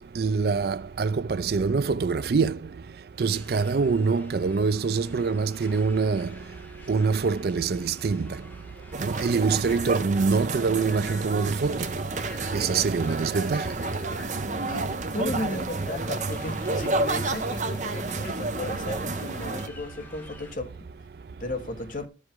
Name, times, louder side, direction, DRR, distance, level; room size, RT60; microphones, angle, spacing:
voice 1, 0.2-2.6 3.2-6.3 6.9-8.4 9.0-11.9 12.5-13.7, right 4 dB, 55° right, 0.4 m, -25 dB
sound 1, 3.2-20.5, left 1 dB, 10° left, 1.2 m, -48 dB
sound 2, 8.9-19.7, right 3 dB, 40° right, 0.8 m, -30 dB
voice 2, 14.7-20.8 21.4-22.1, left 2 dB, 45° left, 1.2 m, -35 dB
12.5 x 5.0 x 3.6 m
head